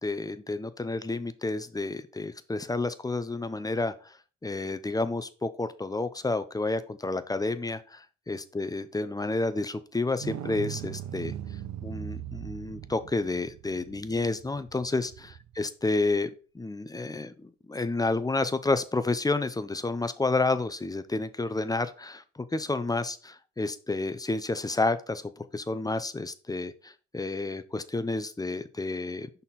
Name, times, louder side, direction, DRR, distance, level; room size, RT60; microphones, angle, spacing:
voice 1, 0.0-4.2 4.4-11.3 11.8-16.3 16.5-29.3, left 3 dB, 15° left, 12 dB, 0.5 m, -30 dB
sound 1, 10.2-15.6 18.7-18.8, right 11 dB, 65° right, 0.6 m, -39 dB
5.7 x 4.1 x 4.1 m, 0.36 s
cardioid pair, 90°, 30 cm